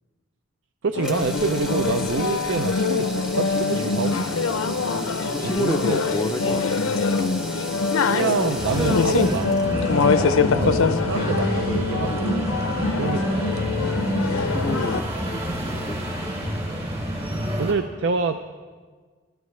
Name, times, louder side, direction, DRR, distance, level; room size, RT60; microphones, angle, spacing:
voice 1, 0.8-4.4 5.4-6.0 6.5-6.6 8.1-9.7 10.5-12.5 13.0-13.6 17.6-18.4, right 4 dB, 60° right, 8 dB, 0.5 m, -27 dB
sound 1, 0.9-15.0, left 4 dB, 80° left, 0.6 m, -24 dB
sound 2, 1.0-11.1, equal, 5° right, 0.8 m, -35 dB
voice 2, 4.7-5.0 5.3-6.6 10.2-10.8 12.6-12.7 14.4-16.0, left 2 dB, 15° left, 1 dB, 0.4 m, -31 dB
sound 3, 8.6-17.7, equal, 25° right, 2.5 m, -28 dB
25.5 x 11.5 x 3.2 m, 1.5 s
head